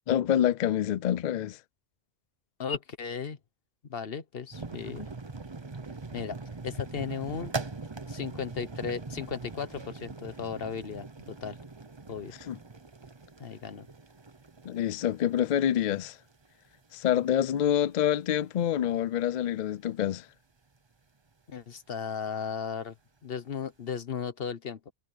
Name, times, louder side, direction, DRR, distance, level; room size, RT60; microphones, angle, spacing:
voice 1, 0.1-1.6 12.5-12.6 14.6-16.2 16.9-20.3, left 10 dB, 70° left, 0.4 m, -27 dB
voice 2, 2.6-3.4 3.9-5.1 6.1-6.4 6.6-7.5 8.1-11.6 12.1-12.3 13.4-13.9 21.5-22.9 23.2-24.9, left 6 dB, 50° left, 1.3 m, -35 dB
sound 1, 4.5-17.0 17.3-17.5 18.0-18.1 18.4-18.6 19.5-19.6, right 3 dB, 25° right, 0.8 m, -42 dB
omnidirectional pair, 1.3 m